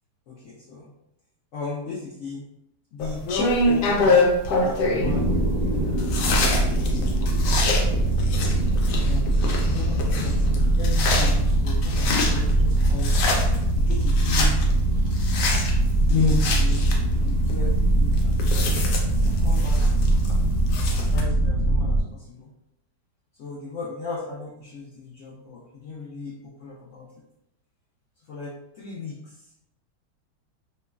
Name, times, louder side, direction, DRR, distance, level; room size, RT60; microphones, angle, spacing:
voice 1, 0.3-0.9 1.5-2.4 2.9-5.9 6.4-8.2 9.0-13.1 13.9-14.6 16.1-16.9 17.2-18.6 19.2-19.8 21.0-22.4 23.4-27.1 28.3-29.2, left 4 dB, 75° left, -6 dB, 0.7 m, -34 dB
sound 1, 3.0-21.2, left 1 dB, 90° left, 1.2 m, -26 dB
sound 2, 5.0-22.0, right 1 dB, 70° right, 1.0 m, -22 dB
3.0 x 2.1 x 2.3 m, 0.81 s
omnidirectional pair, 1.8 m